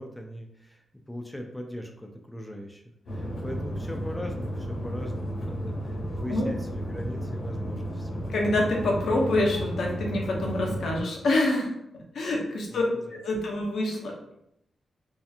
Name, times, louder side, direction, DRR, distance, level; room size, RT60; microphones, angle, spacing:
voice 1, 0.0-2.8 3.1-8.2 12.7-12.8 13.1-13.2, equal, 5° left, 3 dB, 0.3 m, -39 dB
sound 1, 3.1-11.0, equal, 90° left, 1.0 m, -33 dB
voice 2, 8.3-11.7 12.1-12.8 13.1-14.1, left 2 dB, 75° left, 0 dB, 0.7 m, -26 dB
2.8 x 2.4 x 2.4 m, 0.76 s
wide cardioid pair, 125°, 0 cm